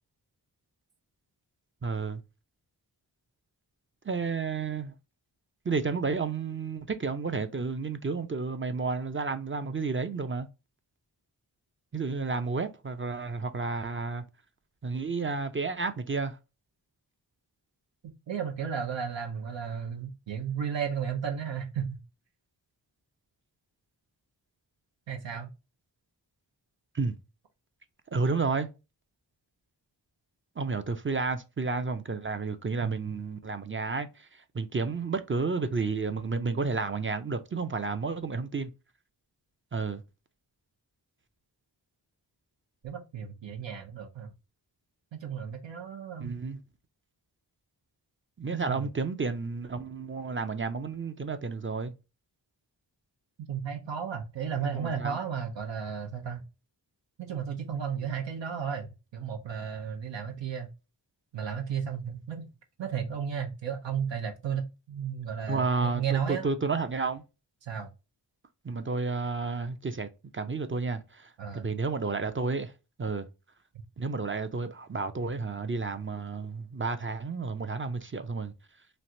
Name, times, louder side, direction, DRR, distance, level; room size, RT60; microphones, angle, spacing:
voice 1, 1.8-2.2 4.0-4.9 5.6-10.5 11.9-14.2 14.8-16.4 26.9-27.2 28.1-28.7 30.6-38.7 39.7-40.0 46.2-46.6 48.4-51.9 54.7-55.2 65.5-67.2 68.6-72.7 73.0-73.3 74.0-78.5, right 4 dB, 30° right, 0.4 m, -31 dB
voice 2, 18.3-22.0 25.1-25.5 32.8-32.9 42.8-44.3 45.2-46.3 48.5-48.9 53.5-56.4 57.2-60.7 61.3-62.5 62.8-66.4 67.6-67.9 71.4-71.6, right 7 dB, 85° right, 0.7 m, -34 dB
3.2 x 2.5 x 2.6 m
wide cardioid pair, 55°, 43 cm